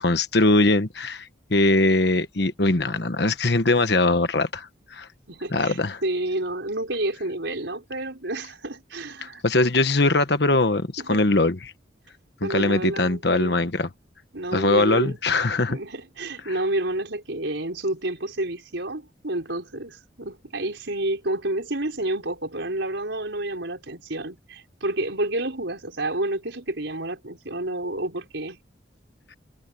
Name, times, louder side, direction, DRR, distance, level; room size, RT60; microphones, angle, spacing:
voice 1, 0.0-5.1 5.5-6.0 9.2-11.7 12.4-13.9 14.5-15.8 16.4-16.5, left 2 dB, 60° left, 1.3 m, -21 dB
voice 2, 5.3-9.4 11.0-11.2 12.4-13.6 14.3-15.2 15.7-28.6, right 1 dB, 75° right, 4.6 m, -29 dB
head